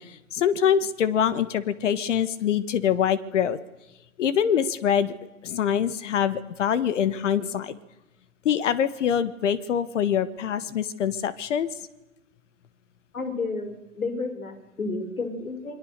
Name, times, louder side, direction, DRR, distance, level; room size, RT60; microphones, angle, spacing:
voice 1, 0.0-3.6 4.2-5.1 5.4-7.7 8.4-11.7, left 8 dB, 60° left, 16 dB, 1.6 m, -24 dB
voice 2, 13.1-15.8, left 3 dB, 80° left, 7 dB, 5.0 m, -31 dB
28.5 x 22.5 x 6.7 m, 0.99 s
hypercardioid pair, 125°, 41 cm